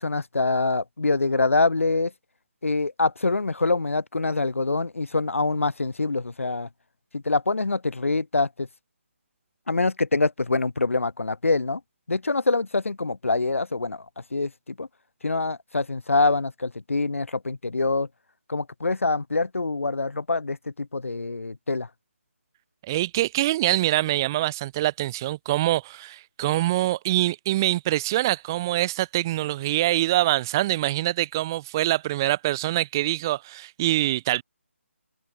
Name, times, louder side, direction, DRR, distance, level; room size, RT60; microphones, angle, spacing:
voice 1, 0.0-2.1 2.6-6.7 7.1-8.7 9.7-11.8 12.1-14.0 14.3-14.5 14.8-14.9 15.2-18.1 18.5-21.9, left 3 dB, 75° left, 1.0 m, -25 dB
voice 2, 22.9-34.4, right 16 dB, 15° right, 0.3 m, -24 dB
figure-of-eight pair, 155°, 7 cm